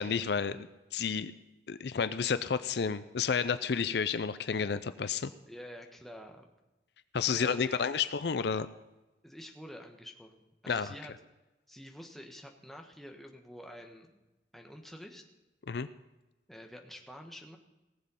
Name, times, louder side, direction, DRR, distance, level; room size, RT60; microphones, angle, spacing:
voice 1, 0.0-1.3 1.7-5.3 7.1-8.7 10.7-10.9 15.7-15.9, left 6 dB, 65° left, 13 dB, 0.5 m, -31 dB
voice 2, 5.5-6.5 7.2-7.9 9.2-11.1 11.7-14.1 14.5-15.2 16.5-17.6, equal, ahead, 2 dB, 1.3 m, -48 dB
18.0 x 7.5 x 5.6 m, 1.1 s
head